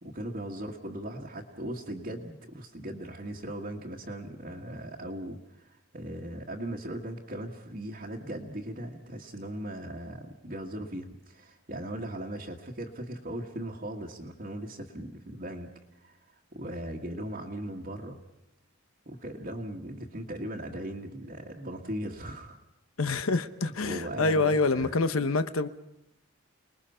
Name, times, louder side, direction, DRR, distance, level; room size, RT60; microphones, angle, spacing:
voice 1, 0.0-18.2 19.1-22.6 23.6-24.9, right 1 dB, 40° right, 1.7 m, -38 dB
voice 2, 23.0-25.7, left 3 dB, 75° left, 0.9 m, -26 dB
29.0 x 20.5 x 5.6 m
head